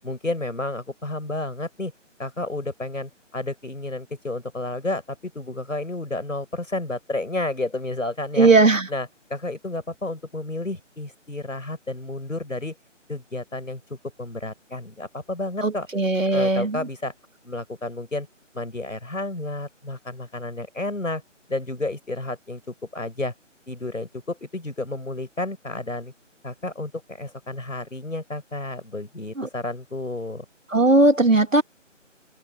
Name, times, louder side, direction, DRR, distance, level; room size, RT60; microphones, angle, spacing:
voice 1, 0.0-1.9 2.2-8.5 8.9-12.8 13.1-15.9 16.3-17.1 17.4-18.3 18.5-21.2 21.5-23.3 23.7-26.1 26.4-30.4, left 2 dB, 90° left, 7.3 m, -31 dB
voice 2, 8.4-8.8 15.6-16.8 29.4-29.5 30.7-31.6, right 2 dB, 90° right, 2.4 m, -18 dB
figure-of-eight pair, 160°, 38 cm